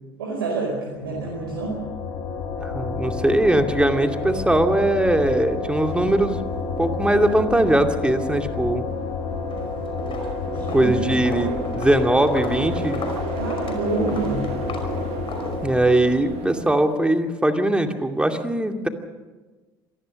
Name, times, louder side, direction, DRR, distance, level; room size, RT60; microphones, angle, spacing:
voice 1, 0.2-1.8 10.5-11.3 13.4-14.5, right 3 dB, 80° right, -2 dB, 4.9 m, -28 dB
sound 1, 1.0-16.8, left 4 dB, 65° left, 4.1 m, -30 dB
voice 2, 2.6-6.4 6.8-8.8 10.7-13.0 15.6-18.9, right 1 dB, 10° right, 5 dB, 2.5 m, -20 dB
sound 2, 4.0-17.0, right 10 dB, 60° right, 1.4 m, -37 dB
Walk footsteps, 9.4-9.7 10.0-16.0, left 3 dB, 45° left, 5.4 m, -36 dB
26.5 x 19.0 x 6.5 m, 1.3 s
hypercardioid pair, 60°, 12 cm